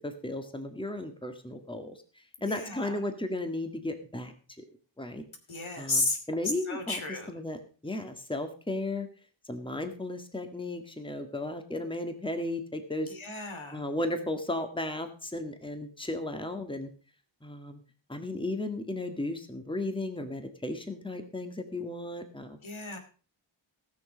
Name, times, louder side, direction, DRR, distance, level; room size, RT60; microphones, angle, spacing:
voice 1, 0.0-2.0 2.4-4.3 5.0-5.2 5.8-7.0 7.3-9.1 9.4-13.1 13.7-16.9 17.4-17.8 18.1-22.6, left 2 dB, 10° left, 6 dB, 1.7 m, -35 dB
voice 2, 2.4-3.0 5.5-6.2 6.7-7.3 13.1-13.8 22.6-23.0, left 2 dB, 75° left, 5 dB, 2.8 m, -33 dB
18.0 x 6.5 x 5.1 m, 0.39 s
wide cardioid pair, 65°, 49 cm